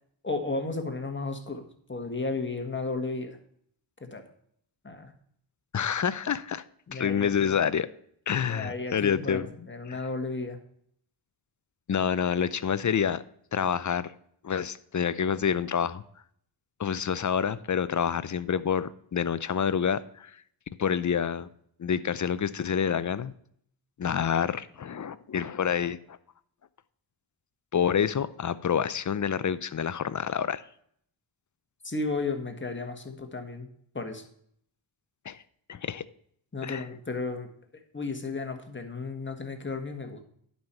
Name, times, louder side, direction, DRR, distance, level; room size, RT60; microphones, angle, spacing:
voice 1, 0.2-3.4 4.0-4.3 4.8-5.1 6.9-7.5 8.5-10.6 31.8-33.7 33.9-34.2 36.5-37.5 37.9-40.2, left 3 dB, 25° left, 5 dB, 1.6 m, -34 dB
voice 2, 5.7-6.6 6.9-7.9 8.3-9.5 9.9-10.0 11.9-13.2 13.5-14.1 14.4-16.0 16.8-20.3 20.8-21.5 21.8-23.3 24.0-26.2 27.7-30.6 35.2-35.4 35.7-36.0 36.6-36.9, left 7 dB, 40° left, 16 dB, 0.6 m, -28 dB
11.0 x 5.7 x 4.4 m, 0.65 s
wide cardioid pair, 85°, 46 cm